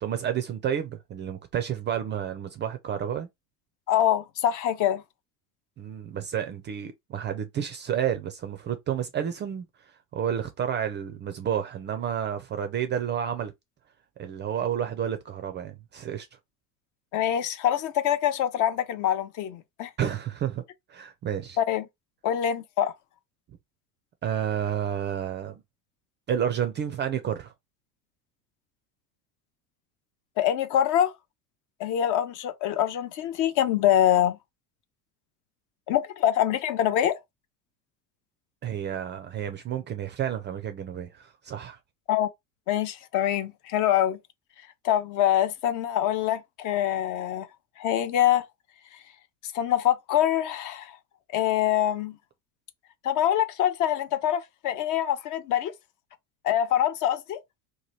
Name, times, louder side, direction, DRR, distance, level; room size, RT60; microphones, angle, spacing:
voice 1, 0.0-3.3 5.8-9.6 10.1-13.5 14.2-16.3 20.0-20.6 20.9-21.6 24.2-25.6 26.3-27.5 38.6-41.8, right 9 dB, 25° right, 0.4 m, -30 dB
voice 2, 3.9-5.0 17.1-19.9 21.6-21.8 22.2-22.9 30.4-31.1 31.8-34.4 35.9-37.2 42.1-42.3 42.7-44.2 44.8-47.5 47.8-48.5 49.5-51.0 51.3-52.2 53.0-55.7 56.4-57.4, left 11 dB, 45° left, 0.5 m, -24 dB
2.8 x 2.2 x 3.0 m
hypercardioid pair, 75°, 46 cm